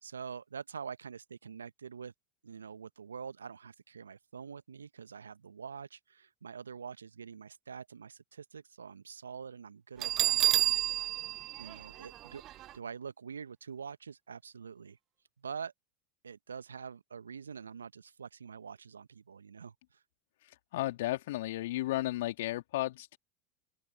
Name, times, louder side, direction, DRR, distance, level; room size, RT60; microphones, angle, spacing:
voice 1, 0.0-2.1 2.4-11.2 11.6-12.4 12.7-15.0 15.4-15.7 16.2-20.0, right 6 dB, 80° right, 1.2 m, -45 dB
Bell, 10.0-12.7, right 14 dB, 40° right, 0.4 m, -30 dB
voice 2, 20.7-23.2, left 16 dB, 65° left, 2.3 m, -33 dB
open air
figure-of-eight pair, 80°, 0 cm